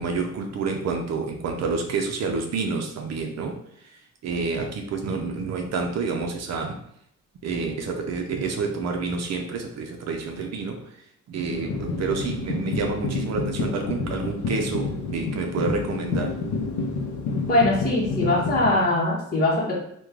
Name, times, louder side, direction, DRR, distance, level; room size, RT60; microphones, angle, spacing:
voice 1, 0.0-3.6 3.8-3.9 4.2-6.8 7.4-11.0 11.3-16.4, right 4 dB, 60° right, 3 dB, 0.5 m, -28 dB
sound 1, 11.5-18.7, left 3 dB, 70° left, 0.6 m, -29 dB
voice 2, 17.5-19.7, left 2 dB, 30° left, -7 dB, 0.9 m, -22 dB
3.0 x 2.2 x 3.6 m, 0.73 s
cardioid pair, 90°, 30 cm